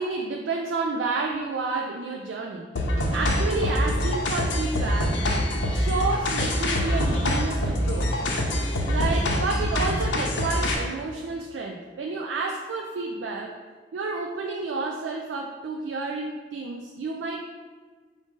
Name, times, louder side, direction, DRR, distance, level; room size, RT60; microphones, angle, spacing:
voice 1, 0.0-2.7 3.1-5.2 5.7-8.1 8.8-13.6 13.9-17.5, right 3 dB, 90° right, 1 dB, 0.4 m, -30 dB
sound 1, 2.8-10.8, left 1 dB, 90° left, 0.7 m, -25 dB
5.0 x 2.6 x 3.6 m, 1.5 s
head